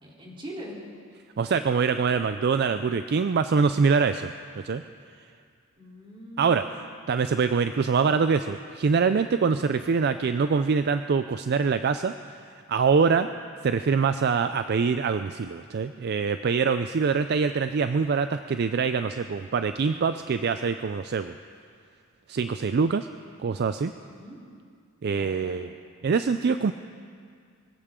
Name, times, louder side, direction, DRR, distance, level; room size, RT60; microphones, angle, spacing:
voice 1, 0.0-0.8 5.8-6.6 24.0-24.4 25.1-25.6, equal, 25° right, -4 dB, 3.4 m, -42 dB
voice 2, 1.4-4.8 6.4-6.6 7.1-12.1 12.7-13.3 13.6-21.3 22.3-23.1 23.4-23.9 25.0-25.7 26.0-26.7, right 5 dB, 55° right, 10 dB, 0.4 m, -24 dB
24.5 x 15.5 x 3.7 m, 2.2 s
head